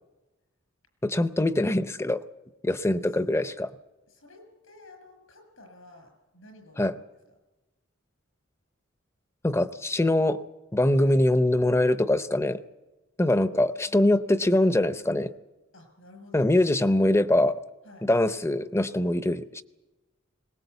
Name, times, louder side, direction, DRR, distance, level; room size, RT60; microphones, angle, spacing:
voice 1, 1.0-2.2 2.6-3.7 6.8-6.9 9.4-10.4 10.7-12.6 13.2-15.3 16.3-17.6 18.0-19.6, left 1 dB, 15° left, 12 dB, 0.6 m, -23 dB
voice 2, 4.1-7.0 11.0-11.2 13.5-14.1 15.7-16.5 17.8-18.1, left 2 dB, 85° left, 5 dB, 6.6 m, -52 dB
21.5 x 19.5 x 8.2 m, 1.1 s
head